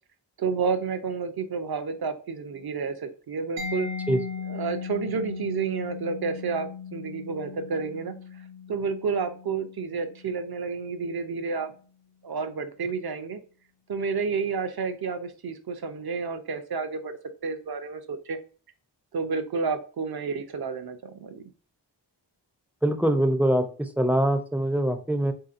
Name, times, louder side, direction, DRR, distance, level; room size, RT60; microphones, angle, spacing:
voice 1, 0.4-3.9 4.5-11.7 12.2-13.4 13.9-17.2 17.4-18.4 19.1-21.5, right 5 dB, 55° right, 9 dB, 0.5 m, -30 dB
Mallet percussion, 3.6-11.1, left 6 dB, 90° right, 0.9 m, -38 dB
voice 2, 22.8-25.3, right 1 dB, 5° right, 7 dB, 0.4 m, -23 dB
3.5 x 2.8 x 2.4 m, 0.40 s
wide cardioid pair, 45°, 44 cm